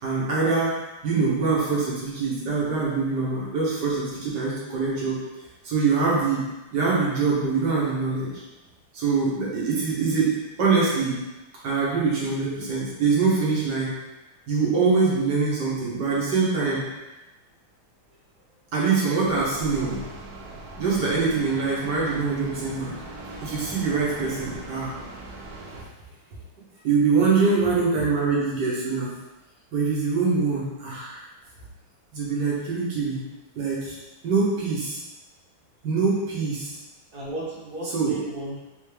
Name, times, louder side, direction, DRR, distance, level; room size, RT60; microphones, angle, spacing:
voice 1, 0.0-0.8 1.0-5.2 5.6-6.4 6.7-8.3 8.9-10.3 10.6-11.2 11.6-13.9 14.5-16.8 18.7-20.0 20.8-23.0 23.4-24.9 26.8-29.1 29.7-31.2 32.1-33.2 33.5-34.0 34.2-35.0 35.8-36.8 37.9-38.1, right 4 dB, 55° right, -6 dB, 1.6 m, -24 dB
sound 1, 19.2-25.9, right 2 dB, 80° right, 0.8 m, -40 dB
voice 2, 26.1-26.4 26.7-26.9 27.1-27.5 27.8-28.0 37.1-38.6, right 1 dB, 40° right, -7 dB, 0.8 m, -36 dB
3.7 x 3.6 x 3.3 m, 1.1 s
omnidirectional pair, 2.4 m